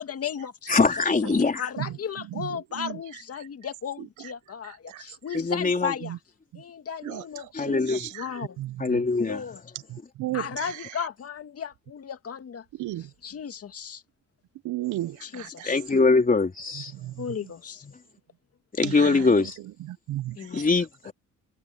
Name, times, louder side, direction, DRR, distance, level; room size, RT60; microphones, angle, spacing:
voice 1, 0.0-0.8 1.3-6.2 6.5-8.6 9.2-9.6 10.3-12.6 13.0-14.0 15.2-15.8 17.2-17.9 18.8-19.2 20.4-20.7 21.1-21.2, left 7 dB, 50° left, 2.1 m, -36 dB
voice 2, 0.7-1.7 5.3-5.9 7.5-8.1 8.8-9.4 15.6-16.9 17.8-18.0 18.8-19.6 20.5-21.1, left 3 dB, 30° left, 3.7 m, -22 dB
voice 3, 2.3-3.0 4.9-5.0 6.0-6.2 6.5-6.6 7.0-8.3 8.6-9.0 9.9-10.9 12.8-13.1 14.6-15.7 16.9-17.4 18.8-19.5 19.9-20.6, right 15 dB, 80° right, 0.8 m, -35 dB
cardioid pair, 90°, 30 cm